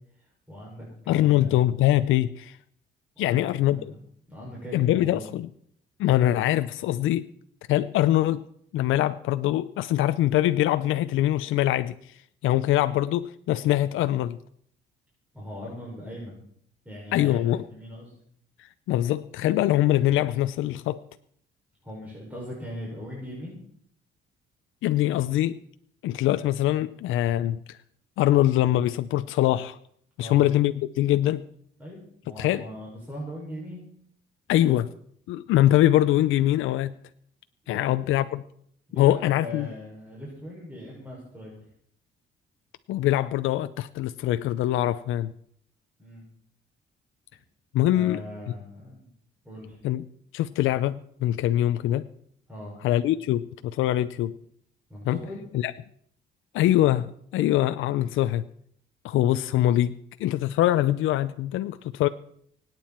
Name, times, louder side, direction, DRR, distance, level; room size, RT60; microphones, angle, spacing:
voice 1, 0.2-1.6 3.2-4.0 4.3-5.2 15.3-16.3 16.8-18.1 21.8-23.6 30.2-30.5 31.8-33.8 37.6-37.9 38.9-41.5 46.0-46.2 47.9-49.1 49.4-49.8 52.5-52.8 54.9-55.4, left 1 dB, 10° right, -5 dB, 6.2 m, -40 dB
voice 2, 1.1-2.6 3.2-3.8 4.7-5.5 6.0-7.3 7.7-8.4 8.7-12.1 12.4-14.4 17.1-17.6 18.9-21.0 24.8-25.6 26.0-27.8 28.2-29.8 30.2-31.4 32.4-32.6 34.5-34.9 35.3-36.9 37.7-38.4 39.0-39.7 42.9-45.3 47.7-48.2 49.8-50.0 50.3-52.1 52.8-53.4 53.7-54.3 55.0-55.2 55.5-55.7 56.5-58.4 59.0-59.9 60.2-62.1, left 13 dB, 85° left, 11 dB, 0.6 m, -23 dB
24.5 x 9.3 x 4.4 m, 0.65 s
cardioid pair, 90°, 20 cm